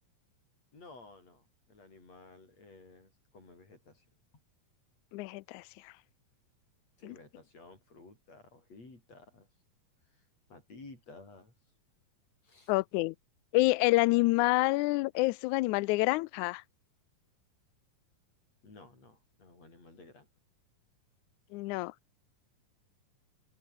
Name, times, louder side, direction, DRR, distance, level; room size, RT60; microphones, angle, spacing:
voice 1, 0.7-4.1 7.0-9.5 10.1-11.5 12.4-12.7 18.6-20.3, left 3 dB, 50° left, 9.2 m, -54 dB
voice 2, 5.1-5.9 12.7-13.1 13.5-16.6 21.5-21.9, left 21 dB, 85° left, 1.7 m, -27 dB
open air
omnidirectional pair, 3.9 m